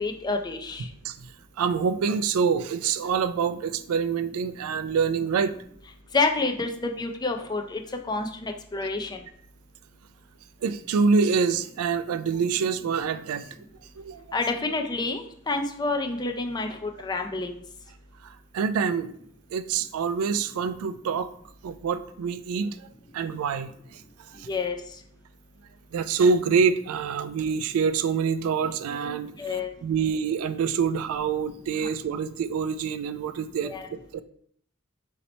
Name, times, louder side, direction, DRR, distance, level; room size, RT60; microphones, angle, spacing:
voice 1, 0.0-0.9 6.1-7.8 8.1-9.2 14.3-17.6 24.5-24.8 29.4-29.7 33.6-33.9, left 3 dB, 20° left, 4 dB, 0.4 m, -28 dB
voice 2, 0.8-1.3 1.6-5.5 10.6-13.5 14.0-14.2 18.2-19.1 19.5-21.3 21.6-22.9 23.1-24.5 25.9-34.2, right 5 dB, 90° right, 13 dB, 0.3 m, -26 dB
4.1 x 2.8 x 4.2 m, 0.65 s
head